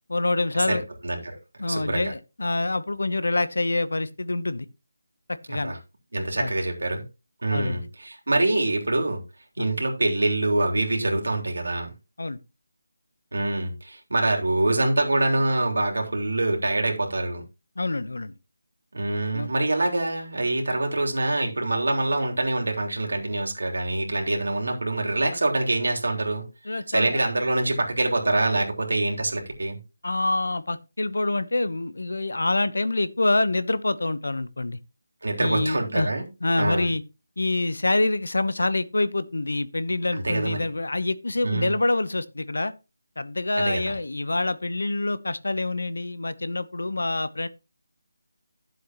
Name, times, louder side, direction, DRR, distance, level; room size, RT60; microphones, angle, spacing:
voice 1, 0.1-0.8 1.6-4.7 5.3-5.7 6.4-6.5 7.5-7.8 9.6-9.7 12.2-12.4 17.8-18.3 19.3-19.5 26.6-27.2 30.0-34.8 35.4-36.1 36.4-37.0 37.4-42.7 43.2-47.5, left 2 dB, 80° left, 0.9 m, -26 dB
voice 2, 1.0-1.4 1.7-2.1 5.5-5.8 6.1-7.0 7.4-9.2 9.6-11.9 13.3-17.4 18.9-29.8 35.2-36.2 36.5-36.9 40.1-40.6 41.4-41.8 43.6-43.8, right 2 dB, 80° right, 3.3 m, -25 dB
12.0 x 7.7 x 3.0 m
figure-of-eight pair, 175°, 0 cm